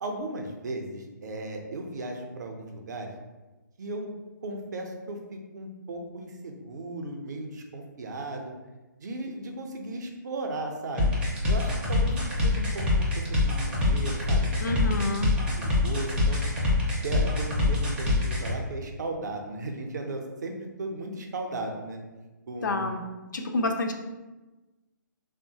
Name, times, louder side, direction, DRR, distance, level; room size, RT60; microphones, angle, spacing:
voice 1, 0.0-3.1 3.8-4.1 4.4-8.5 9.0-11.1 11.5-12.9 13.2-15.3 15.5-16.4 17.0-22.0 22.5-22.9, right 2 dB, 60° right, 3 dB, 0.5 m, -36 dB
sound 1, 11.0-18.5, left 2 dB, 10° right, 0.4 m, -25 dB
voice 2, 14.6-15.3 22.6-23.0 23.3-23.9, left 2 dB, 65° left, 4 dB, 0.4 m, -28 dB
3.0 x 2.1 x 2.7 m, 1.1 s
hypercardioid pair, 145°, 11 cm